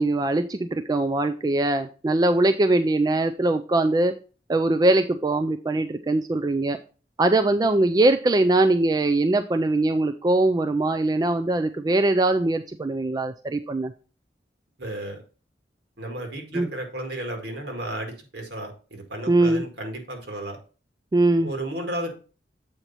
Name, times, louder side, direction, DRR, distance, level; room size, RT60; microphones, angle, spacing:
voice 1, 0.0-4.1 4.5-6.8 7.2-13.9 16.5-16.7 19.3-19.7 21.1-21.5, right 2 dB, 20° right, 8 dB, 0.3 m, -22 dB
voice 2, 14.8-15.2 16.0-20.6 21.4-22.1, right 1 dB, 70° right, 3 dB, 1.9 m, -33 dB
7.9 x 4.4 x 4.1 m, 0.35 s
head